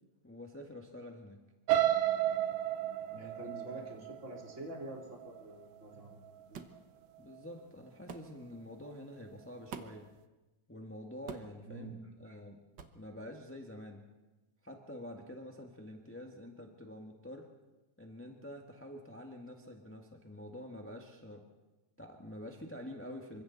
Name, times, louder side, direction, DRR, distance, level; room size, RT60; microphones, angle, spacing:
voice 1, 0.2-1.4 3.1-3.5 7.2-10.1 10.7-11.9 12.2-12.6 12.9-14.1 14.6-17.5 18.0-21.5 22.0-23.4, left 1 dB, 10° left, 2 dB, 0.9 m, -47 dB
sound 1, 1.7-5.6 6.1-6.4 6.8-6.9, right 12 dB, 85° right, 2.3 m, -32 dB
voice 2, 3.1-6.2 6.5-6.6 11.7-12.0 12.2-12.4, right 1 dB, 25° right, -1 dB, 3.3 m, -47 dB
sound 2, 6.5-6.8 8.1-8.3 9.7-10.1 11.3-11.6 12.8-13.0, right 6 dB, 50° right, 1.4 m, -45 dB
27.5 x 25.0 x 4.1 m, 1.1 s
omnidirectional pair, 3.4 m